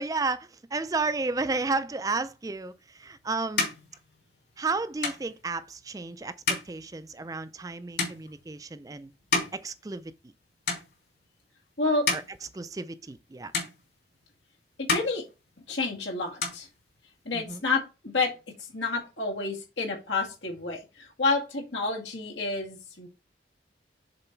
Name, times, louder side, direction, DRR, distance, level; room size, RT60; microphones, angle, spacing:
voice 1, 0.0-3.7 4.6-6.3 6.7-9.1 9.5-10.1 12.1-12.2 12.5-13.5 17.3-17.6, right 3 dB, 20° right, 0.3 m, -32 dB
sound 1, 2.7-10.4 10.6-11.4 11.8-13.3 13.5-14.4 14.7-16.0 16.2-17.3, left 4 dB, 60° left, 2.8 m, -33 dB
voice 2, 14.8-15.2 15.7-16.7 17.3-18.3 18.6-23.1, left 3 dB, 90° left, 2.1 m, -29 dB
6.8 x 4.0 x 4.5 m
head